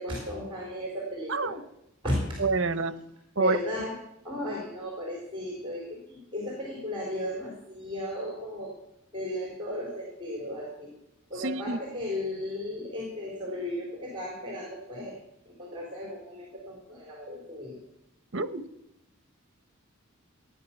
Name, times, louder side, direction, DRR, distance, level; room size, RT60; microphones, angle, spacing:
voice 1, 0.0-1.6 2.0-2.4 3.4-4.0 4.2-8.7 9.1-10.9 11.3-15.2 15.5-17.8, left 1 dB, 25° right, -1 dB, 3.7 m, -35 dB
voice 2, 1.3-1.6 2.4-3.0 3.4-3.6 11.4-11.8 18.3-18.6, right 3 dB, 60° right, 13 dB, 1.0 m, -27 dB
16.0 x 10.0 x 7.2 m, 0.81 s
head